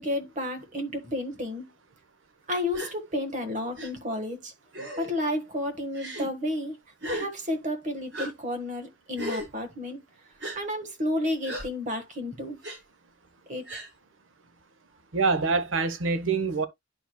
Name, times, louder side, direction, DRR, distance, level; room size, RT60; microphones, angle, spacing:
voice 1, 0.0-1.7 2.5-4.5 5.0-6.8 7.1-10.0 10.5-12.6 13.5-13.8, left 1 dB, 40° right, 1.5 m, -31 dB
Gasp, 2.7-2.9 3.8-3.9 4.7-5.1 5.9-6.3 7.0-7.3 8.1-8.3 9.1-9.5 10.4-10.6 11.4-11.7 12.6-12.8 13.7-13.9, equal, 65° right, 4.0 m, -34 dB
voice 2, 15.1-16.7, right 4 dB, 85° right, 0.9 m, -25 dB
11.0 x 4.7 x 2.2 m
head